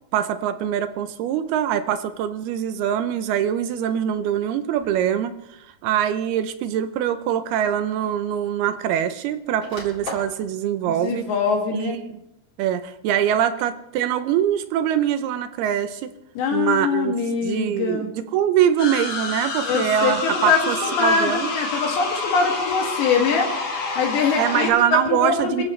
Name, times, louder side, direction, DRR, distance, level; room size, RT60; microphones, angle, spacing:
voice 1, 0.1-11.3 11.7-12.2 12.6-16.1 16.5-17.1 17.4-21.5 24.4-25.6, right 10 dB, 80° right, 11 dB, 2.5 m, -23 dB
sound 1, 4.8-5.1 6.1-6.2 7.6-7.7 7.9-9.1 9.4-10.4, left 2 dB, 20° left, 3.5 m, -37 dB
voice 2, 11.0-12.0 16.4-18.1 19.7-23.5 24.0-25.6, left 5 dB, 85° left, 1 dB, 4.5 m, -23 dB
sound 2, 18.8-24.7, left 3 dB, 40° left, 1.5 m, -28 dB
25.5 x 15.0 x 3.2 m, 0.88 s
omnidirectional pair, 4.9 m